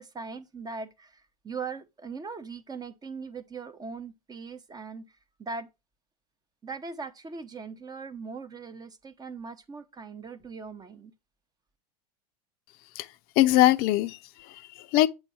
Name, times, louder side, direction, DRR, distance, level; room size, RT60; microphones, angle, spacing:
voice 1, 0.0-5.0 5.4-5.7 6.6-11.1, right 4 dB, 20° right, 0.8 m, -40 dB
voice 2, 12.9-15.1, left 15 dB, 50° left, 0.6 m, -23 dB
8.0 x 3.8 x 4.2 m
hypercardioid pair, 85°, 20 cm